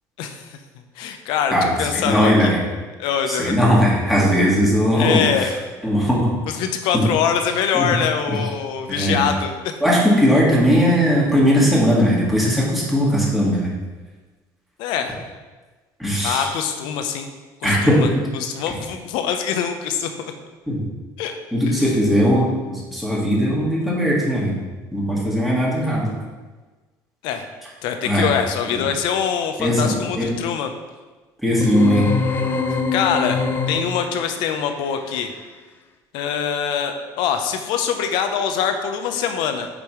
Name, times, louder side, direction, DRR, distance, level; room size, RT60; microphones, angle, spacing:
voice 1, 1.0-2.5 3.0-3.5 5.0-5.6 6.6-9.7 14.8-15.2 16.2-17.3 17.6-20.3 21.2-21.3 21.8-21.9 27.2-27.5 27.8-30.7 32.9-35.3 36.1-39.7, left 7 dB, 80° left, 7 dB, 0.7 m, -24 dB
voice 2, 1.5-2.6 3.3-5.5 5.8-6.3 6.9-7.1 7.7-8.0 8.3-8.4 8.9-9.2 9.8-13.7 16.0-16.5 17.6-18.2 20.7-20.8 21.5-24.6 24.9-26.1 28.0-28.3 29.6-30.3 31.4-32.1, equal, ahead, -6 dB, 1.9 m, -18 dB
sound 1, 31.6-34.2, left 4 dB, 25° left, 0.5 m, -23 dB
8.3 x 5.2 x 3.1 m, 1.3 s
cardioid pair, 135°, 8 cm